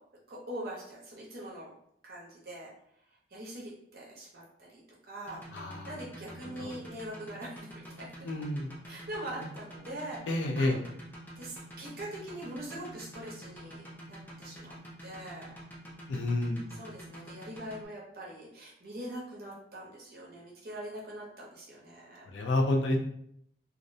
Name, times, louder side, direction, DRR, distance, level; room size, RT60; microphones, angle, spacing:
voice 1, 0.3-1.7 2.0-2.7 3.3-4.8 5.1-5.4 5.8-7.7 8.0-8.3 8.9-10.2 10.5-10.7 11.4-14.8 15.0-15.5 16.8-22.3, right 1 dB, 55° right, -4 dB, 0.7 m, -43 dB
sound 1, 5.3-17.9, equal, 10° left, 0.4 m, -47 dB
voice 2, 5.5-6.0 6.4-6.7 8.2-8.7 10.3-10.8 16.1-16.7 22.3-23.0, left 1 dB, 85° left, 2 dB, 0.4 m, -29 dB
2.4 x 2.0 x 2.6 m, 0.71 s
head